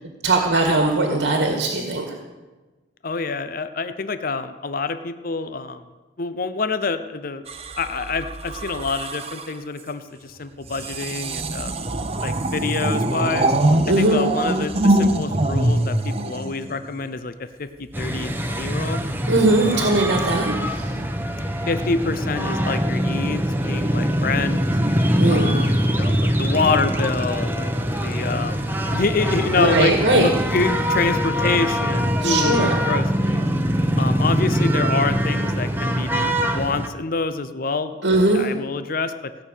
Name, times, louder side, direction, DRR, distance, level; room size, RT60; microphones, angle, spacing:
voice 1, 0.2-2.1 13.9-14.2 19.3-20.9 25.2-25.5 29.6-30.3 32.2-32.8 38.0-38.4, right 2 dB, 85° right, 2 dB, 1.9 m, -19 dB
voice 2, 3.0-5.8 6.2-7.4 7.8-11.8 12.2-13.5 13.9-19.0 19.7-20.1 21.7-24.6 25.3-29.9 30.2-33.5 34.0-39.3, left 4 dB, 50° left, 10 dB, 0.7 m, -26 dB
sound 1, 7.5-9.6 10.6-17.1 18.0-18.3, right 1 dB, 35° right, 0.8 m, -23 dB
sound 2, 17.9-36.9, equal, 10° right, 1.0 m, -23 dB
17.0 x 6.4 x 9.0 m, 1.2 s
head